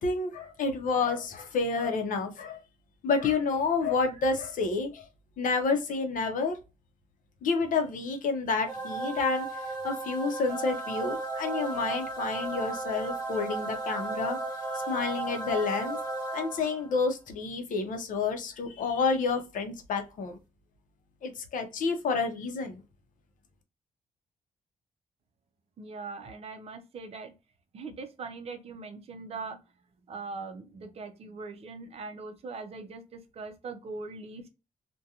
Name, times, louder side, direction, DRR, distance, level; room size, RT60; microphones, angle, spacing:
voice 1, 0.0-2.6 3.0-5.1 5.4-6.6 7.4-14.4 14.9-16.0 16.3-20.4 21.2-22.8, left 4 dB, 70° left, 0.6 m, -29 dB
sound 1, 8.7-16.9, right 2 dB, 30° left, 1.0 m, -34 dB
voice 2, 25.8-27.3 27.7-29.6 30.1-34.5, right 4 dB, 45° right, 0.5 m, -41 dB
2.4 x 2.2 x 2.7 m
wide cardioid pair, 165°, 14 cm